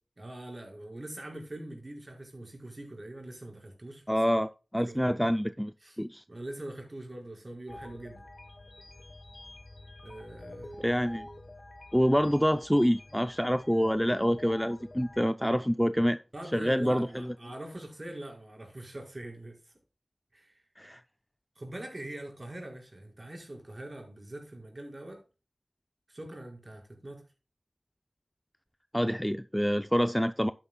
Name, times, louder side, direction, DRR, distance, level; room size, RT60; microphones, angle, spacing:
voice 1, 0.2-4.2 4.8-5.2 5.8-6.0 6.3-8.2 10.0-10.8 16.3-19.7 20.3-20.6 21.5-25.2 26.1-27.2, right 1 dB, 40° right, 5.0 m, -43 dB
voice 2, 4.1-6.2 10.8-11.3 11.9-16.2 16.5-17.3 20.8-21.0 28.9-30.5, equal, ahead, 0.5 m, -27 dB
sound 1, 7.7-15.2, left 1 dB, 45° left, 1.3 m, -48 dB
12.0 x 9.7 x 2.2 m
wide cardioid pair, 50°, 0 cm